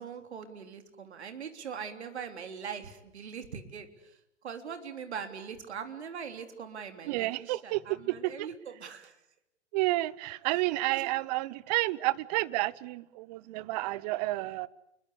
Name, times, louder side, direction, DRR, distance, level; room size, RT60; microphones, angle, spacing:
voice 1, 0.0-4.2 4.4-9.2 10.9-11.1, right 7 dB, 65° right, 3.6 m, -41 dB
voice 2, 7.1-7.8 8.1-8.5 9.7-14.7, right 19 dB, 35° right, 1.0 m, -30 dB
29.0 x 21.5 x 8.3 m
figure-of-eight pair, 115°, 35 cm